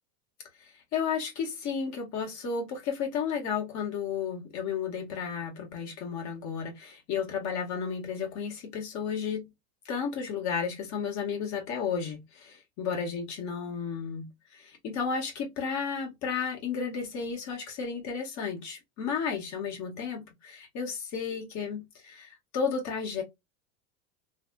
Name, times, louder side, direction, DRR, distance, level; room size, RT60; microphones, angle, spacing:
voice 1, 0.6-9.5 9.8-23.2, left 6 dB, 45° left, 1.6 m, -33 dB
3.3 x 2.5 x 2.3 m
supercardioid pair, 115°, 40 cm